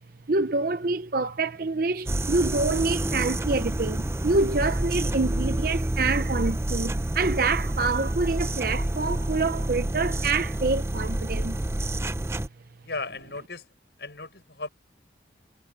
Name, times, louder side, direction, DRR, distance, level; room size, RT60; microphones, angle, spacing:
voice 1, 0.3-11.6, right 3 dB, 50° right, 0.7 m, -26 dB
sound 1, 2.1-12.5, right 1 dB, 15° right, 0.5 m, -28 dB
voice 2, 12.8-13.6 14.0-14.7, left 3 dB, 70° left, 5.0 m, -35 dB
head